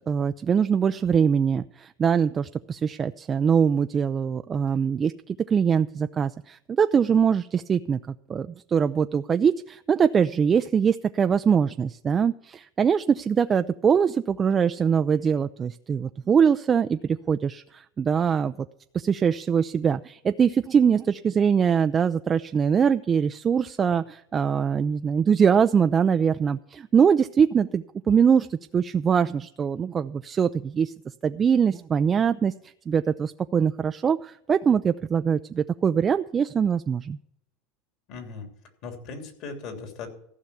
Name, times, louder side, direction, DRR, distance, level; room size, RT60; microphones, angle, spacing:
voice 1, 0.1-18.5 18.9-30.9 31.2-37.2, right 7 dB, 25° right, 9 dB, 0.4 m, -23 dB
voice 2, 38.1-38.5 38.8-40.1, left 4 dB, 55° left, 4 dB, 3.1 m, -38 dB
14.5 x 5.8 x 8.3 m, 0.74 s
supercardioid pair, 120°, 0 cm